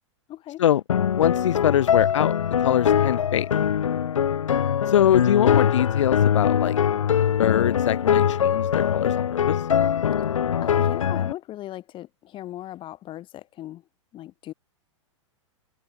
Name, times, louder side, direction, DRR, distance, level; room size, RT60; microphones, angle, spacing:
voice 1, 0.3-0.6 5.0-5.2 10.2-10.3 10.6-13.8 14.1-14.5, left 14 dB, 30° left, 3.5 m, -38 dB
sound 1, 0.9-11.3, left 8 dB, 85° left, 0.4 m, -22 dB
voice 2, 1.1-2.3 2.6-3.5 4.9-6.8 7.4-9.6, left 10 dB, 70° left, 1.5 m, -23 dB
hypercardioid pair, 110°, 16 cm